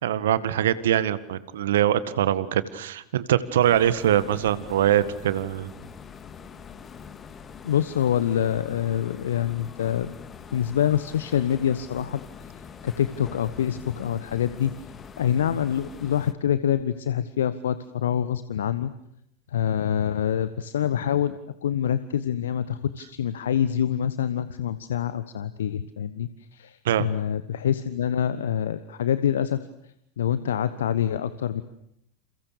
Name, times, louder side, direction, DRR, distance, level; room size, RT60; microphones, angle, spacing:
voice 1, 0.0-5.7 26.9-27.1, right 11 dB, 65° right, 15 dB, 1.8 m, -23 dB
sound 1, 3.6-16.3, left 6 dB, 30° left, 2.3 m, -44 dB
voice 2, 7.6-10.2 10.5-12.2 12.8-14.7 15.2-18.9 19.5-29.6 30.2-31.6, left 9 dB, 70° left, 13 dB, 1.1 m, -26 dB
29.5 x 29.0 x 6.9 m, 0.76 s
figure-of-eight pair, 80°, 0 cm